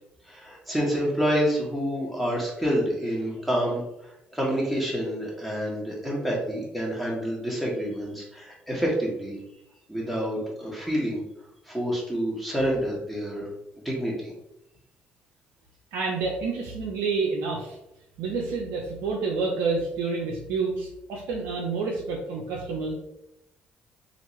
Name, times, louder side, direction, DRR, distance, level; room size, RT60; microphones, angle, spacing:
voice 1, 0.3-3.8 4.3-9.4 9.9-11.2 11.7-13.5 13.8-14.3, equal, ahead, -4 dB, 1.1 m, -28 dB
voice 2, 15.9-17.8 18.2-22.9, right 4 dB, 70° right, -1 dB, 0.5 m, -28 dB
2.9 x 2.5 x 3.0 m, 0.84 s
hypercardioid pair, 45°, 5 cm